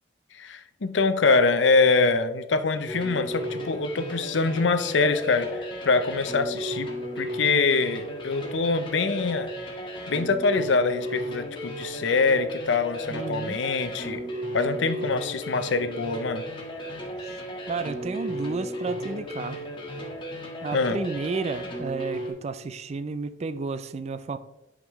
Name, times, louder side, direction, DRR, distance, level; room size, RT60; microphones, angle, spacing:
voice 1, 0.3-6.9 7.2-9.5 10.1-14.2 14.5-16.4 20.7-21.0, left 4 dB, 75° left, 10 dB, 0.6 m, -24 dB
sound 1, 2.9-22.3, equal, 25° left, 1.4 m, -35 dB
voice 2, 13.1-13.6 17.7-19.6 20.6-24.4, right 4 dB, 35° right, 13 dB, 0.4 m, -32 dB
10.5 x 5.1 x 3.1 m, 0.95 s
head